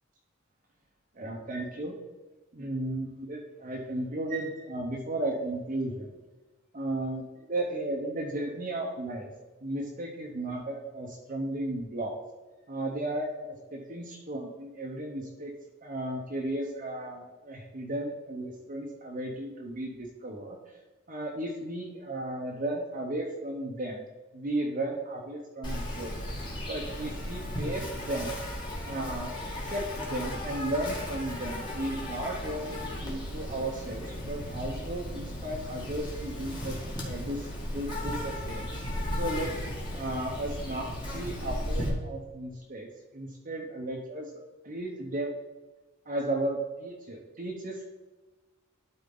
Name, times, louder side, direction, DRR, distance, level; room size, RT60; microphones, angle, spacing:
voice 1, 1.1-2.0 2.5-6.1 6.7-7.2 7.5-9.3 9.6-12.2 12.7-15.5 15.8-20.6 21.1-24.0 24.3-26.1 26.6-28.3 28.8-29.3 29.6-36.8 37.0-38.7 39.1-39.5 39.9-44.3 44.6-45.3 46.1-48.0, right 1 dB, 45° right, -2 dB, 1.0 m, -34 dB
Insect, 25.6-41.9, left 1 dB, 20° left, 1.9 m, -36 dB
12.0 x 4.5 x 3.9 m, 1.2 s
head